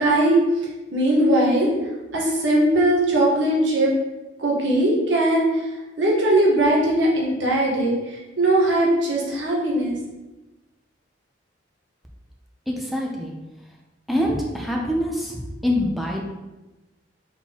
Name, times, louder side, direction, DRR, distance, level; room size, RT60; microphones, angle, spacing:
voice 1, 0.0-1.7 2.1-3.9 4.4-5.7 6.0-10.0, right 1 dB, 80° right, -3 dB, 1.2 m, -20 dB
voice 2, 12.7-13.3 14.1-16.2, left 1 dB, ahead, -2 dB, 0.5 m, -25 dB
4.3 x 3.8 x 2.9 m, 1.1 s
head